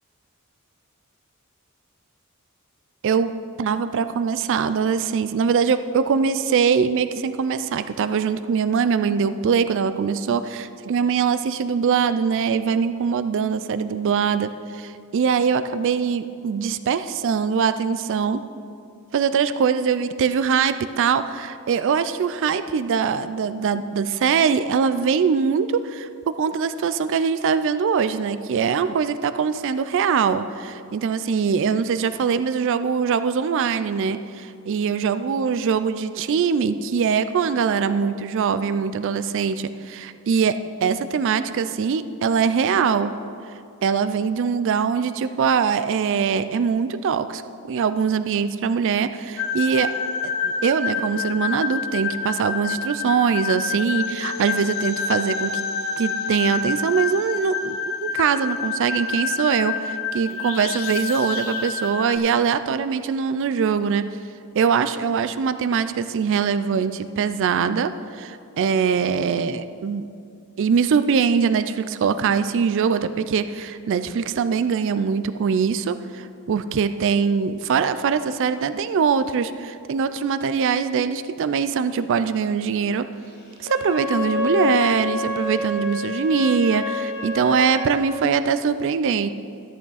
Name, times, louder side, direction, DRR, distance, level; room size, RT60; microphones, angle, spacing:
voice 1, 3.6-18.4 19.1-43.2 43.8-47.4 47.7-49.9 50.2-55.6 56.0-64.1 64.5-70.1 70.6-83.1 83.6-89.3, right 6 dB, 55° right, 12 dB, 0.3 m, -22 dB
sound 1, 49.4-62.2, left 5 dB, 65° left, 0.6 m, -28 dB
Wind instrument woodwind instrument, 83.6-88.1, left 4 dB, 45° left, 1.5 m, -28 dB
13.0 x 8.6 x 4.1 m, 2.4 s
head